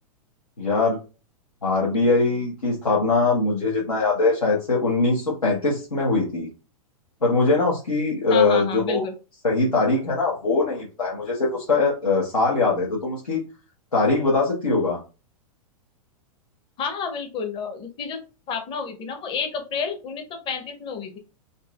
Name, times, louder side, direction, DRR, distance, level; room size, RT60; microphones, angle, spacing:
voice 1, 0.6-1.0 1.6-6.5 7.2-9.0 9.4-13.4 13.9-15.0, left 3 dB, 85° left, -5 dB, 1.1 m, -22 dB
voice 2, 8.3-9.1 16.8-18.2 18.5-21.2, left 5 dB, 30° left, 6 dB, 0.8 m, -30 dB
4.0 x 2.6 x 2.4 m, 0.31 s
figure-of-eight pair, 105°, 19 cm